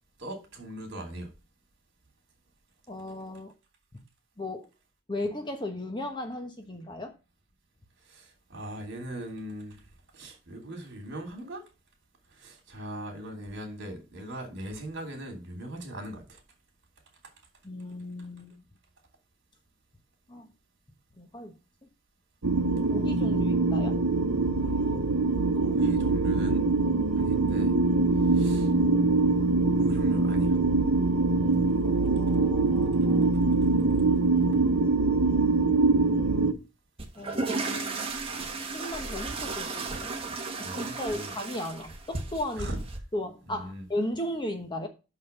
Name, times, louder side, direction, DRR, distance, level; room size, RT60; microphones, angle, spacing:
voice 1, 0.2-1.3 8.0-9.8 10.1-11.6 12.3-16.4 17.2-17.3 24.6-25.1 25.6-26.7 27.2-27.8 28.3-28.7 29.8-30.6 40.6-41.3 42.6-42.8 43.5-43.8, right 1 dB, 50° right, 3.1 m, -39 dB
voice 2, 2.9-3.5 3.9-4.0 4.4-4.7 5.1-7.1 17.6-18.5 20.3-20.5 21.2-21.5 22.9-24.0 31.8-33.4 37.2-38.1 38.7-40.1 40.6-42.7 43.1-44.9, left 1 dB, 20° left, 1.1 m, -36 dB
sound 1, 22.4-36.5, right 3 dB, 80° right, 0.9 m, -24 dB
sound 2, 37.0-43.0, right 3 dB, 25° right, 1.4 m, -34 dB
6.3 x 5.6 x 6.8 m
head